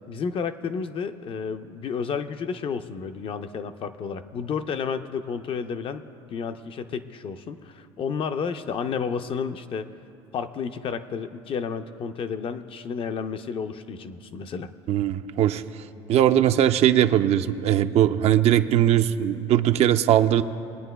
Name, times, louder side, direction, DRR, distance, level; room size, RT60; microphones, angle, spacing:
voice 1, 0.1-6.0 6.3-9.9 10.3-14.7, left 6 dB, 40° left, 9 dB, 0.5 m, -31 dB
voice 2, 14.9-15.6 16.1-20.4, right 11 dB, 50° right, 10 dB, 0.4 m, -20 dB
22.0 x 9.0 x 2.3 m, 2.7 s
supercardioid pair, 95°, 14 cm